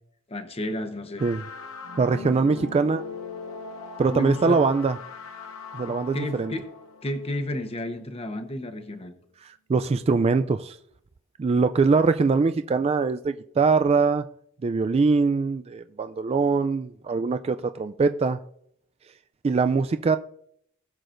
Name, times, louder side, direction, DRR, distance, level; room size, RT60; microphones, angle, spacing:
voice 1, 0.3-1.2 4.1-4.6 5.9-6.6 7.0-9.1, left 1 dB, 30° left, 1.0 m, -32 dB
sound 1, 1.2-8.0, left 4 dB, 75° left, 0.9 m, -40 dB
voice 2, 2.0-3.0 4.0-5.0 5.7-6.5 9.7-10.8 11.4-14.2 14.6-18.4 19.4-20.2, right 4 dB, 30° right, 0.3 m, -22 dB
19.5 x 6.6 x 2.6 m
head